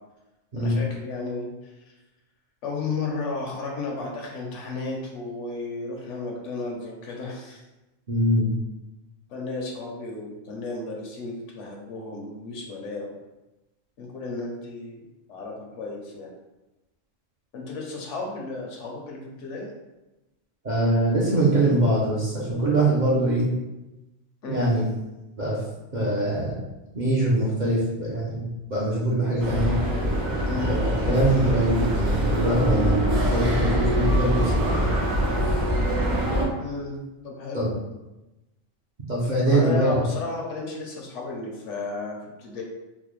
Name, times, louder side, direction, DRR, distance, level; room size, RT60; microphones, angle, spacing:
voice 1, 0.6-1.9 2.6-7.6 9.3-13.1 14.0-15.0 15.3-16.3 17.5-19.7 24.4-24.7 30.5-30.8 36.6-37.0 37.2-37.6 39.5-42.6, left 3 dB, 70° left, 0 dB, 1.0 m, -33 dB
voice 2, 8.1-8.5 20.6-23.5 24.5-24.8 25.4-25.6 25.9-26.6 26.9-29.7 30.6-34.9 37.5-37.7 39.1-40.0, right 1 dB, 50° right, -6 dB, 0.6 m, -23 dB
sound 1, 29.4-36.5, equal, 85° right, 1.3 m, -24 dB
4.0 x 2.1 x 3.1 m, 1.0 s
omnidirectional pair, 1.4 m